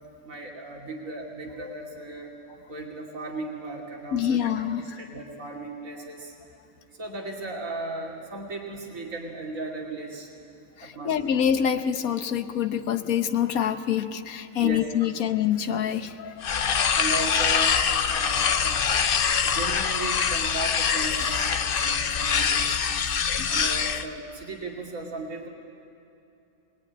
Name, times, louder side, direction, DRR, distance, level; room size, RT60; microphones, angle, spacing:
voice 1, 0.2-2.3 2.7-6.3 7.0-10.3 10.8-11.1 14.6-14.8 16.9-17.7 18.1-19.0 19.4-22.8 23.5-25.5, right 2 dB, 70° right, -1 dB, 3.0 m, -36 dB
voice 2, 4.1-4.9 10.8-16.4 17.5-17.6 23.4-23.6, left 9 dB, 90° left, 8 dB, 1.4 m, -26 dB
sound 1, 16.4-24.1, left 7 dB, 50° left, 0.8 m, -24 dB
25.5 x 20.0 x 9.7 m, 2.8 s
omnidirectional pair, 1.4 m